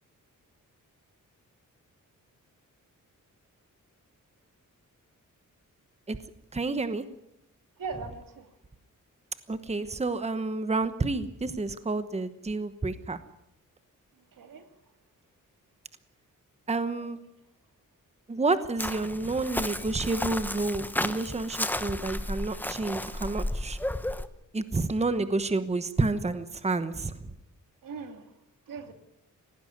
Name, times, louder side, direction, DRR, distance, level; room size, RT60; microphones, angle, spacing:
voice 1, 6.5-7.0 9.5-13.2 16.7-17.2 18.3-23.8 24.5-27.3, right 3 dB, 20° right, 12 dB, 1.1 m, -29 dB
voice 2, 7.8-8.5 14.3-14.7 16.9-17.1 27.8-28.3 28.7-28.9, right 5 dB, 85° right, 7 dB, 2.6 m, -40 dB
Chirp tweet, 18.8-24.3, left 1 dB, 5° left, 1.1 m, -33 dB
18.5 x 16.0 x 9.6 m, 0.80 s
wide cardioid pair, 135°, 32 cm